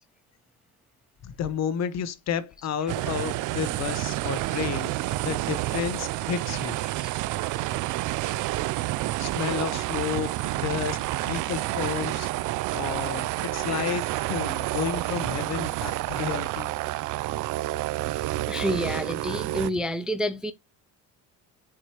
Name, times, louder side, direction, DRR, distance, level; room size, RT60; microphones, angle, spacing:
voice 1, 1.2-6.8 9.2-12.3 12.7-16.7, left 8 dB, 50° left, 1.0 m, -31 dB
sound 1, 2.9-19.7, right 17 dB, 60° right, 0.5 m, -29 dB
voice 2, 18.5-20.5, equal, ahead, 0.5 m, -29 dB
7.5 x 4.8 x 2.9 m
cardioid pair, 125°, 35 cm